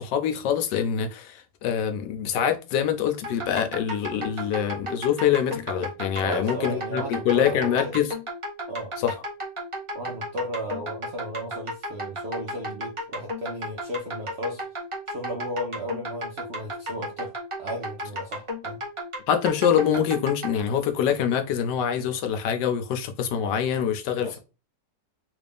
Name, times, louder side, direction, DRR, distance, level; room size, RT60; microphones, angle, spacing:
voice 1, 0.0-8.1 9.0-9.1 19.3-24.4, left 8 dB, 85° left, 1.3 m, -25 dB
sound 1, 3.2-20.6, equal, 25° right, 0.7 m, -34 dB
voice 2, 6.2-8.0 8.7-9.0 9.9-14.7 15.1-18.8 24.2-24.4, equal, 60° right, 0.6 m, -35 dB
3.5 x 2.5 x 3.4 m
omnidirectional pair, 1.8 m